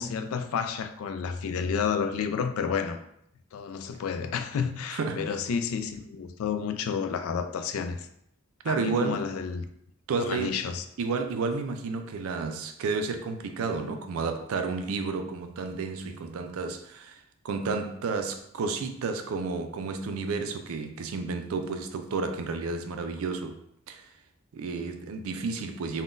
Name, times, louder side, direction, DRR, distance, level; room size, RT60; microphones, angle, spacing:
voice 1, 0.0-3.0 3.5-8.1 8.7-9.6 10.2-10.8, left 6 dB, 80° left, 0.3 m, -30 dB
voice 2, 4.9-5.3 8.6-9.2 10.1-10.6 11.0-23.6 23.9-24.1 24.5-26.0, right 4 dB, 80° right, 0.4 m, -31 dB
3.6 x 2.2 x 2.5 m
head